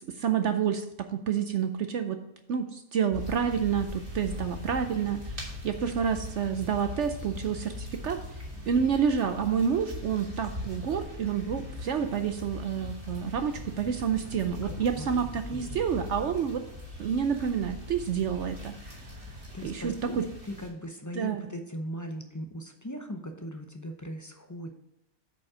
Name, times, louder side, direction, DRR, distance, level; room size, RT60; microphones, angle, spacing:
voice 1, 0.0-2.2 2.5-8.2 8.7-16.6 17.0-19.0 19.6-20.3 21.1-21.5, right 7 dB, 65° right, 8 dB, 0.8 m, -29 dB
sound 1, 3.1-20.7, left 1 dB, 25° right, 2.3 m, -41 dB
voice 2, 14.6-15.8 19.0-19.2 19.5-24.7, equal, 20° left, 4 dB, 0.5 m, -39 dB
8.3 x 5.2 x 4.8 m, 0.87 s
omnidirectional pair, 1.5 m